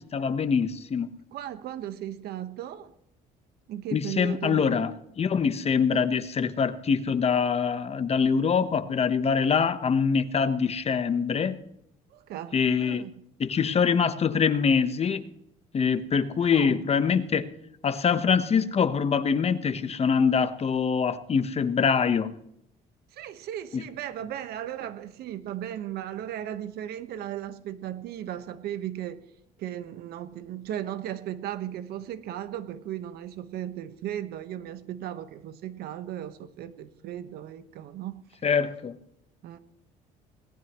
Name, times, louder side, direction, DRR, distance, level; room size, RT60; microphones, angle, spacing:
voice 1, 0.1-1.1 3.9-4.9 5.2-11.6 12.5-13.0 13.4-15.2 15.7-17.5 17.8-22.3 23.7-23.8 38.4-39.0, left 6 dB, 40° left, 1.1 m, -24 dB
voice 2, 1.3-2.9 3.7-4.8 12.1-13.1 16.5-16.8 23.1-29.2 29.6-38.2 39.4-39.6, right 11 dB, 70° right, 1.3 m, -36 dB
21.0 x 18.5 x 3.1 m
supercardioid pair, 85°, 17 cm